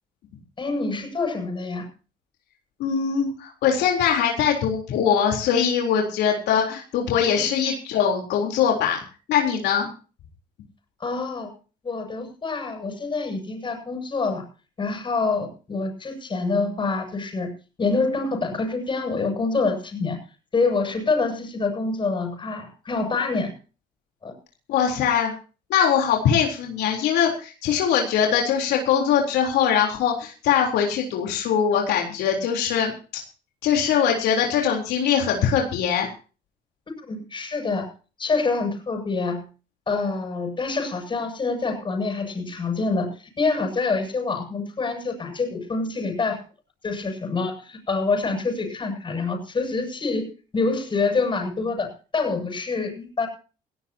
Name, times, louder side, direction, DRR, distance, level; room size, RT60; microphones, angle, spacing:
voice 1, 0.6-1.8 7.3-7.5 11.0-11.5 11.8-14.4 14.8-17.5 17.8-20.2 20.5-23.5 24.2-24.3 37.1-37.9 38.2-39.5 39.9-46.4 46.8-50.3 50.5-52.9 53.2-53.3, left 3 dB, 30° left, 3 dB, 7.9 m, -26 dB
voice 2, 2.8-9.0 9.3-9.9 24.7-25.3 25.7-33.2 33.6-36.1 52.8-53.1, left 8 dB, 80° left, 0 dB, 3.9 m, -22 dB
18.5 x 17.5 x 2.9 m, 0.37 s
cardioid pair, 110°, 17 cm